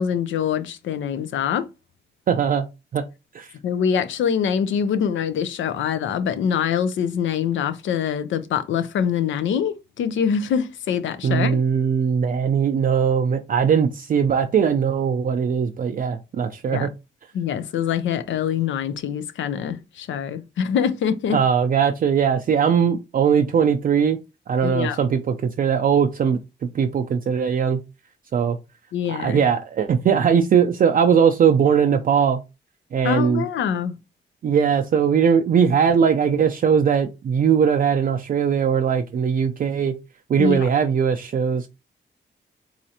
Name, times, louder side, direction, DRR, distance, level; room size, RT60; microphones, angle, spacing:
voice 1, 0.0-1.7 3.6-11.6 16.7-16.9 17.3-21.4 24.6-25.0 28.9-29.4 33.0-34.0 40.4-40.7, left 8 dB, 90° left, 0.5 m, -24 dB
voice 2, 2.3-2.7 2.9-3.0 3.3-3.5 11.2-16.9 21.3-24.2 24.5-26.4 26.7-27.8 28.3-28.6 29.1-32.4 32.9-33.4 34.4-40.0 40.3-41.7, right 7 dB, 50° right, 0.4 m, -20 dB
4.1 x 2.5 x 2.8 m
cardioid pair, 90°, 19 cm